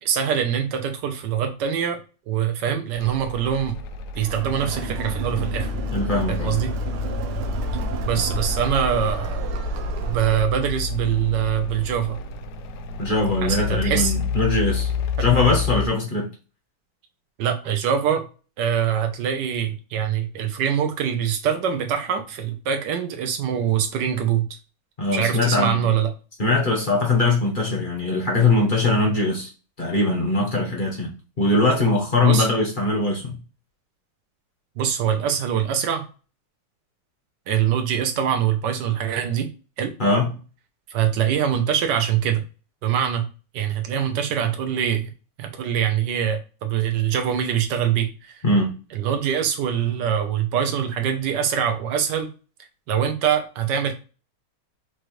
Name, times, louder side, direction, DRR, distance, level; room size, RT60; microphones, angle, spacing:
voice 1, 0.0-3.8 4.1-5.7 6.3-6.7 8.0-9.4 10.1-12.2 13.4-14.1 17.4-18.2 18.6-24.5 25.1-26.1 32.2-32.5 34.8-36.1 37.5-39.5 39.8-39.9 40.9-42.4 42.8-43.3 43.5-45.0 45.4-48.4 48.9-52.3 52.9-53.9, right 9 dB, 65° right, 6 dB, 1.3 m, -23 dB
sound 1, 3.0-15.9, left 4 dB, 80° left, 0.9 m, -29 dB
Crowd, 4.2-10.5, right 8 dB, 90° right, 1.5 m, -33 dB
voice 2, 5.9-6.5 13.0-14.9 15.2-16.3 25.0-25.8 26.4-29.5 29.8-31.1 31.4-33.4 40.0-40.3 48.4-48.7, left 2 dB, 35° left, 0 dB, 0.8 m, -21 dB
6.2 x 2.5 x 3.1 m, 0.34 s
omnidirectional pair, 2.3 m